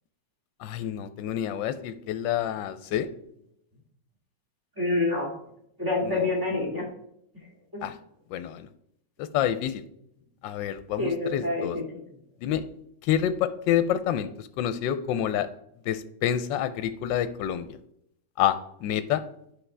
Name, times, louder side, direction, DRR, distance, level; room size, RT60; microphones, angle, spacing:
voice 1, 0.6-3.1 6.0-6.3 7.8-7.9 8.3-8.7 9.2-9.8 10.4-11.8 12.4-12.6 13.0-15.5 15.9-17.7 18.4-19.2, left 10 dB, 85° left, 11 dB, 1.3 m, -28 dB
voice 2, 4.8-5.3 5.8-6.9 7.7-7.9 11.0-11.8, left 2 dB, 10° right, -2 dB, 2.2 m, -27 dB
9.8 x 6.1 x 3.3 m, 0.73 s
omnidirectional pair, 2.0 m